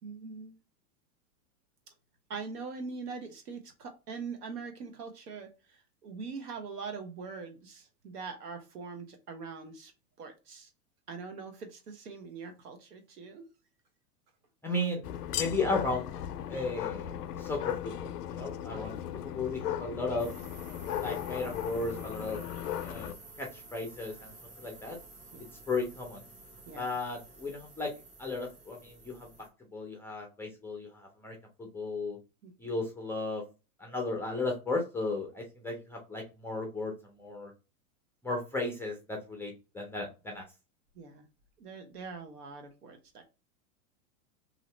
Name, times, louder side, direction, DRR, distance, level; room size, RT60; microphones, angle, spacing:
voice 1, 0.0-0.6 1.9-2.0 2.3-9.9 10.2-10.7 11.1-13.4 14.7-14.9 25.3-25.5 26.6-26.9 32.4-32.5 40.9-41.2 41.6-43.3, right 5 dB, 85° right, 7 dB, 1.2 m, -43 dB
voice 2, 14.6-15.0 15.4-16.1 16.5-19.0 19.2-20.3 21.0-22.4 22.8-25.0 25.7-26.2 26.8-27.9 28.2-32.2 32.6-33.4 33.8-37.5 38.2-40.5, left 2 dB, 5° left, 1 dB, 0.4 m, -35 dB
sound 1, 15.0-23.1, left 11 dB, 90° left, 0.6 m, -37 dB
sound 2, 20.2-29.5, right 3 dB, 15° right, 0.8 m, -52 dB
2.8 x 2.7 x 3.2 m, 0.30 s
hypercardioid pair, 120°, 45 cm